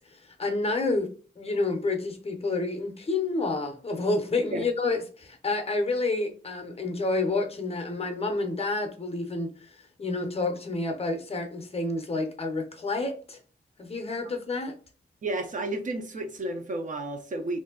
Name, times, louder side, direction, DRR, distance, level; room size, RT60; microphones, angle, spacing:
voice 1, 0.1-1.1 1.4-9.7 10.0-13.4 13.8-14.7, left 3 dB, 35° left, 0.6 m, -29 dB
voice 2, 15.2-17.6, right 2 dB, 50° right, 0.5 m, -32 dB
3.1 x 2.5 x 3.6 m
wide cardioid pair, 180°, 17 cm